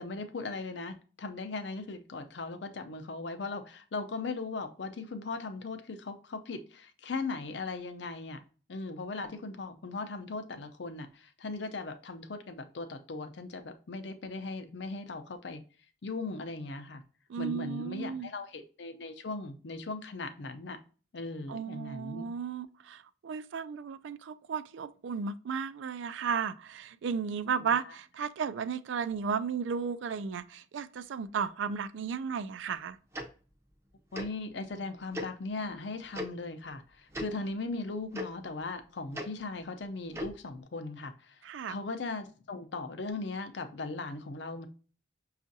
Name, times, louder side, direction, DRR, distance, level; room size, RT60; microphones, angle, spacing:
voice 1, 0.0-8.4 8.7-15.6 16.0-17.0 17.4-20.8 21.1-22.3 27.6-27.9 34.1-41.4 41.7-44.7, left 3 dB, 65° left, 0.5 m, -38 dB
voice 2, 17.3-18.3 21.5-33.0 41.4-41.7, right 6 dB, 75° right, 0.3 m, -34 dB
Tick-tock, 33.1-33.3 34.1-34.3 35.1-35.3 36.1-36.3 37.1-37.3 38.1-38.2 39.1-39.3 40.1-40.3, left 1 dB, 15° right, 0.5 m, -36 dB
6.1 x 2.4 x 2.6 m
head